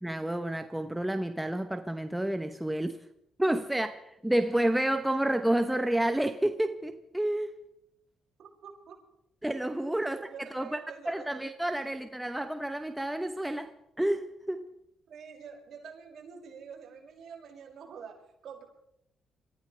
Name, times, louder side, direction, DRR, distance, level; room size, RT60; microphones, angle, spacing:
voice 1, 0.0-3.0 3.4-7.5 9.4-10.2 10.5-10.8 11.1-13.7 14.0-14.7, right 1 dB, 5° right, 1.0 m, -29 dB
voice 2, 8.4-9.0 10.0-11.4 11.9-12.0 15.1-18.6, right 6 dB, 65° right, 6.1 m, -47 dB
27.0 x 15.5 x 3.4 m
cardioid pair, 90°, 0 cm